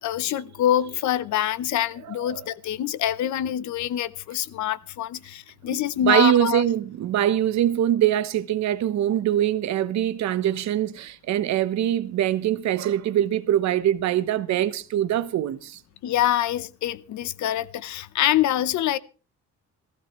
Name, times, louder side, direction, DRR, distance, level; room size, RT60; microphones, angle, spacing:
voice 1, 0.0-6.6 16.0-19.0, left 12 dB, 75° left, 0.8 m, -25 dB
voice 2, 2.1-2.4 6.0-15.8, right 11 dB, 70° right, 1.0 m, -23 dB
18.5 x 15.0 x 3.1 m
cardioid pair, 165°, 29 cm